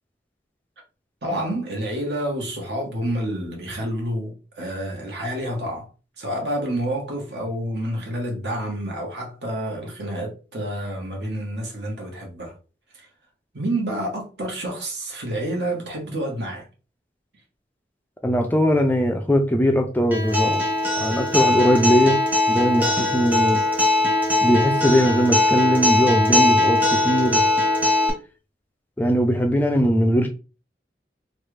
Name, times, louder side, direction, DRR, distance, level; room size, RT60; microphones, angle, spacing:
voice 1, 1.2-5.9 6.2-12.5 12.9-13.1 13.5-16.7, right 1 dB, 75° right, 1.2 m, -28 dB
voice 2, 18.2-20.6 21.0-22.2 22.5-23.6 24.4-27.5 29.0-30.3, equal, 10° left, 0.3 m, -20 dB
Acoustic guitar, 20.1-28.1, left 2 dB, 10° right, 0.7 m, -20 dB
3.1 x 2.3 x 3.2 m
head